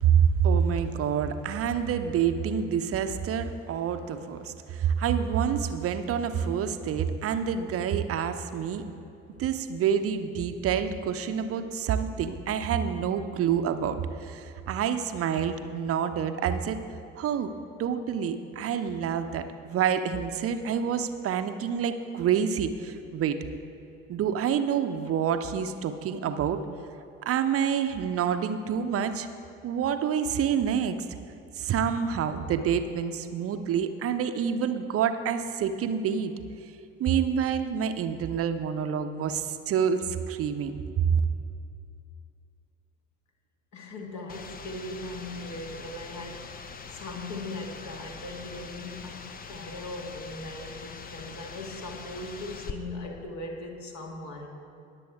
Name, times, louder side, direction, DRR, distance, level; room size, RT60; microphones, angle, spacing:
voice 1, 0.0-8.9 9.4-16.8 17.2-17.5 17.8-23.4 24.1-26.6 27.2-29.3 29.6-31.0 31.6-36.3 37.0-41.2, right 8 dB, 35° right, 9 dB, 0.8 m, -27 dB
voice 2, 43.7-54.5, left 2 dB, 45° left, 1 dB, 1.9 m, -39 dB
sound 1, 44.3-52.7, left 5 dB, 25° left, 0.7 m, -43 dB
20.5 x 7.7 x 3.6 m, 2.6 s
figure-of-eight pair, 55°, 39 cm